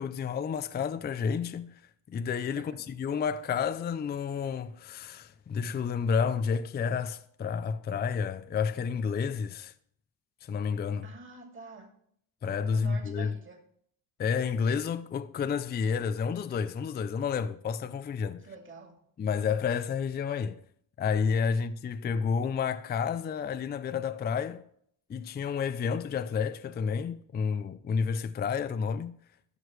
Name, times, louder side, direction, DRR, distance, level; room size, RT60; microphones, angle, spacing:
voice 1, 0.0-1.8 2.1-9.7 10.4-11.1 12.4-13.3 14.2-18.5 19.2-20.6 21.0-24.7 25.1-29.2, left 6 dB, 20° left, 0.4 m, -30 dB
voice 2, 2.5-2.9 11.0-11.9 12.6-13.6 18.4-18.9, right 4 dB, 25° right, 2.5 m, -47 dB
12.5 x 6.3 x 3.2 m
supercardioid pair, 85°, 47 cm